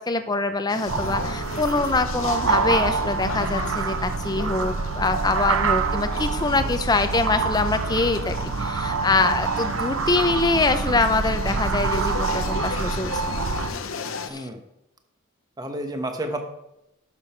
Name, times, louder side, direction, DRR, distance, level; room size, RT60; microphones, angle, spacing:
voice 1, 0.0-13.4 14.3-14.5, left 3 dB, 20° left, 9 dB, 0.6 m, -24 dB
sound 1, 0.7-14.3, left 4 dB, 65° left, 0.7 m, -36 dB
sound 2, 0.9-13.7, right 4 dB, 75° right, 0.8 m, -26 dB
voice 2, 14.3-14.6 15.6-16.4, right 1 dB, 20° right, 5 dB, 1.0 m, -30 dB
11.0 x 6.8 x 4.5 m, 0.86 s
head